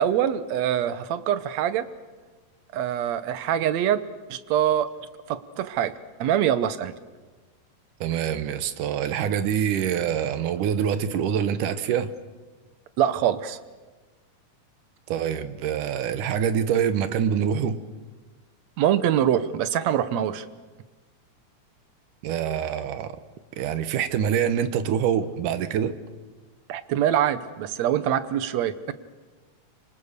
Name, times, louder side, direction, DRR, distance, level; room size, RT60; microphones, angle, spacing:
voice 1, 0.0-1.9 2.7-4.9 5.3-5.9 6.2-6.9 13.0-13.6 18.8-20.5 26.7-28.9, right 10 dB, 70° right, 14 dB, 2.0 m, -24 dB
voice 2, 8.0-12.1 15.1-17.8 22.2-23.1 23.6-25.9, right 8 dB, 90° right, 12 dB, 2.7 m, -25 dB
26.0 x 24.5 x 6.7 m, 1.3 s
omnidirectional pair, 3.5 m